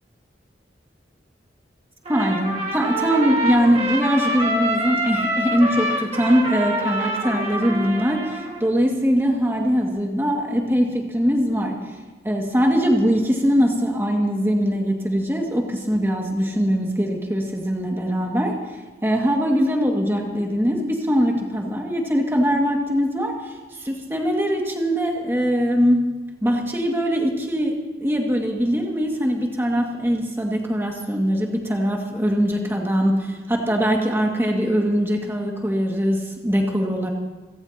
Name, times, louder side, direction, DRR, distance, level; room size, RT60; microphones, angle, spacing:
voice 1, 2.1-11.8 12.2-18.6 19.0-26.1 26.4-37.1, equal, 15° right, 0 dB, 2.1 m, -22 dB
Trumpet, 2.1-8.6, right 1 dB, 35° right, 2.0 m, -26 dB
28.5 x 17.0 x 3.0 m, 1.2 s
head